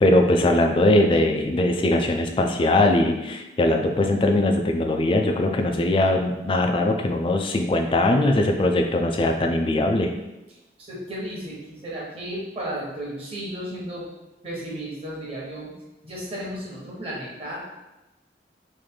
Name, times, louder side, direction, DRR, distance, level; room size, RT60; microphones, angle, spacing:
voice 1, 0.0-10.1, left 1 dB, 30° left, 4 dB, 0.3 m, -21 dB
voice 2, 10.8-14.1 14.4-15.7 16.0-17.7, right 1 dB, 35° right, -5 dB, 1.1 m, -34 dB
3.2 x 2.5 x 3.7 m, 1.0 s
head